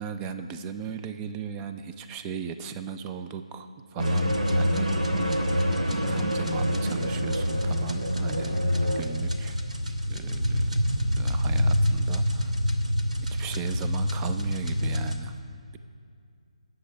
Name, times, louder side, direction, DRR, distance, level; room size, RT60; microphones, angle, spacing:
voice 1, 0.0-5.2 5.9-8.7 9.0-9.6 10.1-10.8 11.2-12.5 13.3-15.4, right 7 dB, 15° right, 9 dB, 0.4 m, -37 dB
sound 1, 4.0-15.2, equal, 90° right, 1.0 m, -26 dB
19.0 x 6.7 x 3.4 m, 2.4 s
figure-of-eight pair, 150°, 4 cm